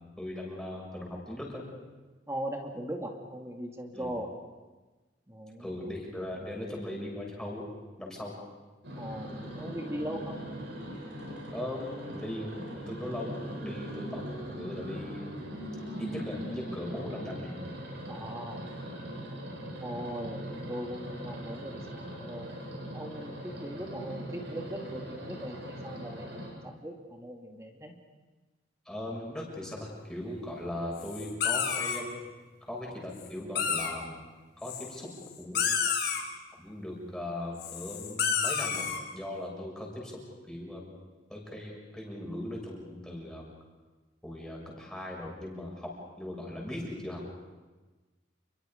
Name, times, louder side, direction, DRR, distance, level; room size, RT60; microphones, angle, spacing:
voice 1, 0.2-1.6 3.9-4.1 5.6-7.7 8.0-8.3 11.5-15.4 16.0-17.6 28.9-32.2 32.7-34.2 34.6-35.1 35.4-35.8 36.6-40.1 40.5-40.9 41.3-43.5 44.2-45.9 46.2-47.3, left 1 dB, 5° left, -3 dB, 7.2 m, -39 dB
voice 2, 2.3-4.3 5.3-5.8 8.9-10.4 18.1-18.7 19.8-27.9, right 1 dB, 15° right, 1 dB, 2.3 m, -39 dB
sound 1, 8.8-26.5, equal, 70° right, 7.8 m, -41 dB
sound 2, 31.0-32.0 33.2-33.3 33.5-33.9 34.6-35.3 35.5-36.2 37.6-39.0, left 7 dB, 65° left, 4.2 m, -30 dB
29.5 x 23.0 x 5.3 m, 1.2 s
head